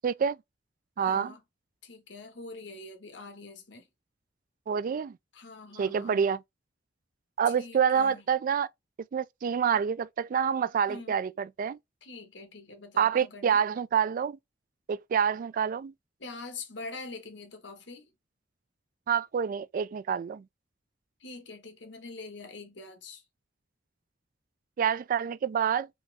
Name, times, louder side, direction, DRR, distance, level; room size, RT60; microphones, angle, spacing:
voice 1, 0.0-0.4 1.0-1.3 4.7-5.2 5.8-6.4 7.4-8.7 9.1-11.8 13.0-14.4 14.9-15.9 19.1-20.4 24.8-25.9, right 7 dB, 50° right, 0.3 m, -27 dB
voice 2, 1.0-1.4 1.8-3.9 5.3-6.3 7.4-8.2 10.9-11.2 12.0-13.6 16.2-18.1 21.2-23.2, left 3 dB, 75° left, 1.3 m, -44 dB
4.1 x 3.5 x 3.4 m
head